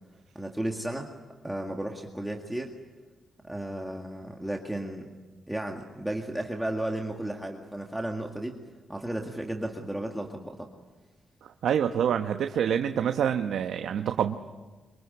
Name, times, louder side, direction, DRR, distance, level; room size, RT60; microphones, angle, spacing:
voice 1, 0.4-1.1 1.4-2.7 3.4-5.1 5.5-8.6 8.9-10.7, right 1 dB, 5° right, 1 dB, 1.9 m, -34 dB
voice 2, 11.4-14.3, right 8 dB, 80° right, 6 dB, 1.0 m, -27 dB
24.5 x 24.5 x 9.8 m, 1.3 s
cardioid pair, 120°, 0 cm